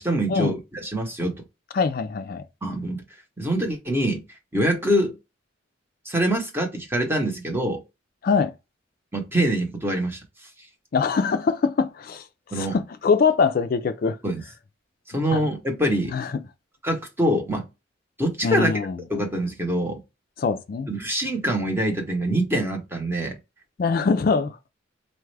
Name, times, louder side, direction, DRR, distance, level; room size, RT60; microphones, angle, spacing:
voice 1, 0.0-1.4 2.6-3.0 3.4-4.2 4.5-5.2 6.0-7.8 9.1-10.2 12.5-12.8 14.2-14.4 15.1-16.1 16.8-17.7 18.2-18.7 19.1-20.0 20.9-23.4, right 1 dB, 10° right, 0.9 m, -24 dB
voice 2, 1.7-2.4 8.2-8.5 10.9-12.3 12.5-14.2 15.1-15.4 16.1-16.4 18.4-19.0 20.4-20.9 23.8-24.6, left 5 dB, 50° left, 0.3 m, -23 dB
4.1 x 2.3 x 3.2 m
head